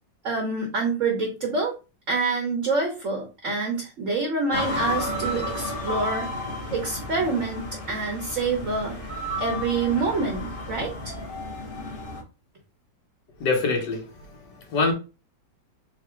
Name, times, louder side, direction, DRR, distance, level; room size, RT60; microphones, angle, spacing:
voice 1, 0.2-1.7 2.1-6.3 6.7-9.0 9.4-10.9, right 3 dB, 55° right, 1.0 m, -26 dB
sound 1, 4.5-12.2, left 1 dB, 40° left, 0.9 m, -32 dB
voice 2, 13.4-14.9, left 3 dB, 65° left, 1.7 m, -25 dB
4.0 x 2.3 x 4.4 m
omnidirectional pair, 2.1 m